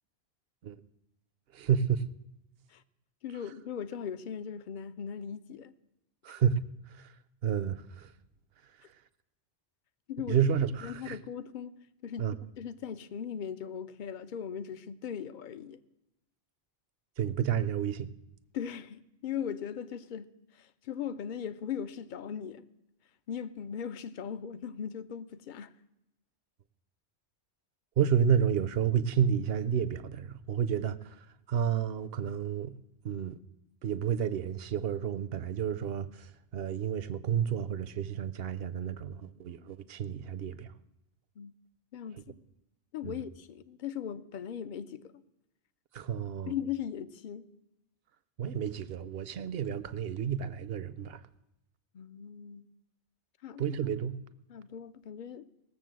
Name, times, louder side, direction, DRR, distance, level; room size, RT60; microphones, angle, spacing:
voice 1, 1.5-2.0 6.2-6.6 7.0-7.1 7.4-8.1 10.3-11.2 12.2-12.4 17.2-18.1 28.0-31.2 31.5-32.7 33.0-33.4 33.8-40.7 43.0-43.2 45.9-46.5 48.4-51.2 53.6-54.2, right 8 dB, 65° right, 0.8 m, -30 dB
voice 2, 3.2-5.7 10.1-10.4 10.8-11.8 12.0-12.3 12.6-15.8 18.5-20.3 20.5-22.7 23.3-25.7 41.4-41.5 41.9-42.4 42.9-45.1 46.5-47.5 51.9-52.7 53.4-53.6 54.5-55.5, left 8 dB, 55° left, 0.7 m, -39 dB
18.5 x 7.2 x 7.5 m
omnidirectional pair, 1.1 m